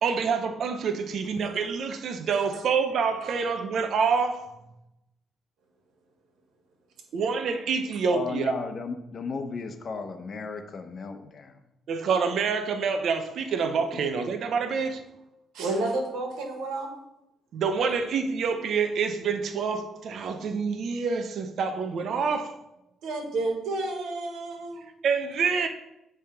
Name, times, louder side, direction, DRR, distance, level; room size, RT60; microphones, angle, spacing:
voice 1, 0.0-4.5 7.1-8.5 11.9-15.0 17.5-22.6 25.0-25.7, right 5 dB, 65° right, 0.7 m, -27 dB
voice 2, 8.1-11.6 13.9-14.1, left 4 dB, 50° left, 0.9 m, -35 dB
voice 3, 15.5-16.9 23.0-24.9, right 2 dB, 85° right, 1.7 m, -31 dB
8.5 x 3.5 x 5.8 m
cardioid pair, 90°, 0 cm